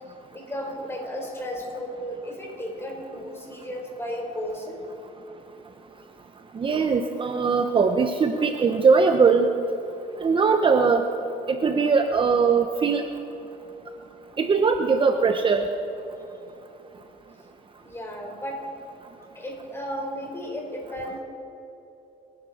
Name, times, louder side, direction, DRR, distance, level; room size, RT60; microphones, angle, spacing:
voice 1, 0.3-4.8 17.8-18.6 19.3-21.2, equal, 15° left, 0 dB, 4.5 m, -34 dB
voice 2, 6.5-9.5 10.2-11.1 11.5-13.1 14.4-15.7, right 5 dB, 30° right, 6 dB, 0.9 m, -20 dB
26.5 x 11.5 x 4.3 m, 3.0 s
cardioid pair, 110°, 17 cm